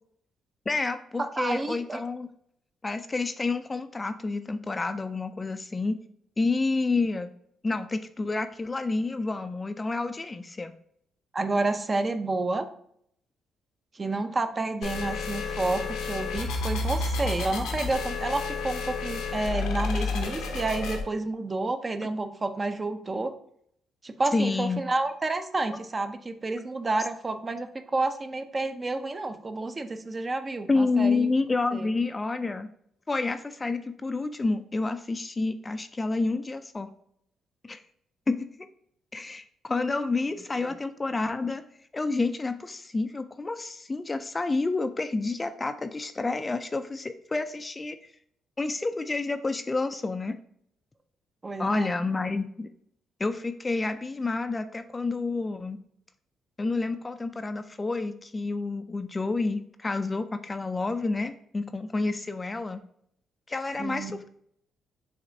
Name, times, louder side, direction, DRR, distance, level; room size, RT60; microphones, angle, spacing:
voice 1, 0.7-2.3 2.8-6.0 6.4-7.3 7.6-10.7 22.0-22.1 24.3-24.8 30.7-32.7 33.1-36.9 37.6-37.8 38.3-38.5 39.1-41.6 41.9-48.0 48.6-50.4 51.6-52.7 53.2-55.8 56.6-62.8 63.5-64.3, left 3 dB, 25° left, 9 dB, 0.3 m, -29 dB
voice 2, 1.2-2.0 11.3-12.7 13.9-23.3 24.0-31.3 31.7-31.9 40.6-40.7 51.4-51.9 63.8-64.1, right 2 dB, 30° right, 8 dB, 0.5 m, -30 dB
sound 1, 14.8-21.0, left 3 dB, 90° left, 0.7 m, -31 dB
5.8 x 3.2 x 2.7 m, 0.67 s
cardioid pair, 90°, 0 cm